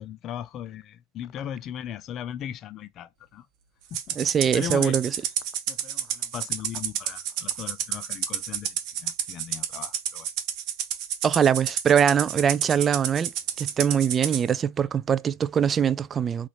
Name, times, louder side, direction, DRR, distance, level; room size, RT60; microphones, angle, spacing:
voice 1, 0.0-3.5 3.9-4.2 4.5-5.3 5.7-10.3, left 10 dB, 40° left, 0.5 m, -38 dB
Rattle (instrument), 3.9-14.4, right 10 dB, 55° right, 0.9 m, -30 dB
voice 2, 4.2-5.1 11.2-13.3 13.6-16.5, right 8 dB, 25° right, 0.3 m, -22 dB
4.1 x 2.5 x 3.1 m
hypercardioid pair, 100°, 0 cm